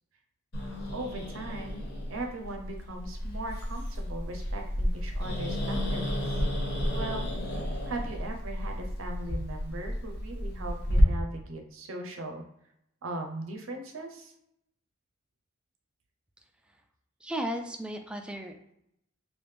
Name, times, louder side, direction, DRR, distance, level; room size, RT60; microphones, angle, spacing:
Growling, 0.5-11.0, equal, 55° left, 1.2 m, -33 dB
voice 1, 0.9-1.8 2.1-6.4 6.9-7.3 7.9-12.4 13.0-14.3, right 2 dB, 75° right, 4 dB, 0.6 m, -39 dB
voice 2, 17.2-18.7, right 1 dB, 5° right, 4 dB, 0.3 m, -35 dB
3.2 x 2.5 x 3.2 m, 0.78 s
head